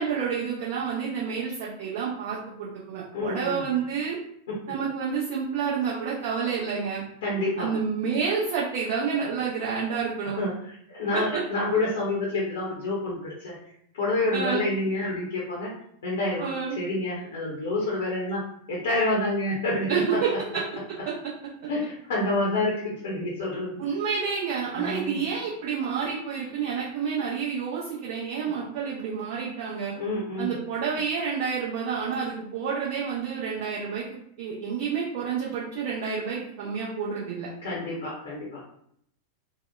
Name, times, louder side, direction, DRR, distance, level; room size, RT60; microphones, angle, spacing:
voice 1, 0.0-4.2 4.7-7.0 7.6-10.4 11.1-11.2 14.3-14.7 16.4-16.8 19.9-20.6 23.8-29.9 30.4-37.5, right 6 dB, 50° right, -5 dB, 0.5 m, -29 dB
voice 2, 3.1-3.7 4.5-4.6 7.2-7.7 10.4-10.5 10.9-13.6 13.9-15.7 16.0-20.2 21.7-23.8 24.7-25.3 29.9-30.5 37.6-38.6, left 2 dB, 60° left, -4 dB, 0.6 m, -28 dB
2.7 x 2.0 x 2.2 m, 0.68 s
figure-of-eight pair, 90°, 0 cm